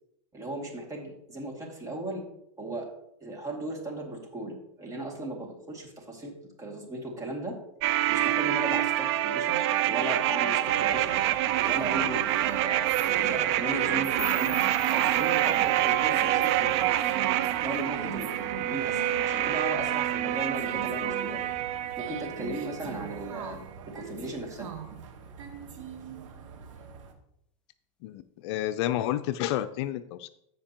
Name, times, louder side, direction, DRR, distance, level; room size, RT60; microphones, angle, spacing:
voice 1, 0.3-2.2 2.6-2.9 3.2-7.6 8.1-11.2 11.6-14.6 14.9-16.9 17.6-21.5 22.0-24.7, right 1 dB, 20° right, 0 dB, 2.4 m, -37 dB
sound 1, 7.8-22.8 23.1-23.2, right 13 dB, 60° right, 0.6 m, -26 dB
sound 2, 10.6-27.1, right 6 dB, 80° right, 1.4 m, -42 dB
sound 3, 14.2-17.1, left 3 dB, 5° left, 0.7 m, -42 dB
voice 2, 28.0-30.3, left 13 dB, 60° left, 11 dB, 0.5 m, -30 dB
14.5 x 5.2 x 3.0 m, 0.77 s
hypercardioid pair, 120°, 16 cm